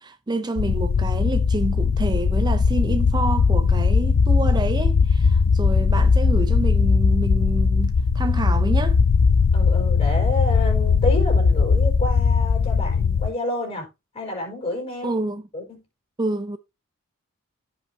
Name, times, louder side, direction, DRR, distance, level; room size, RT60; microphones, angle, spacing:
voice 1, 0.0-9.0 15.0-15.4 16.2-16.6, right 2 dB, 20° right, 0.4 m, -28 dB
sound 1, 0.6-13.3, left 5 dB, 80° left, 0.5 m, -19 dB
voice 2, 9.5-13.9 14.1-15.2 15.5-15.8, left 1 dB, 25° left, 4.5 m, -29 dB
15.5 x 5.5 x 2.6 m
head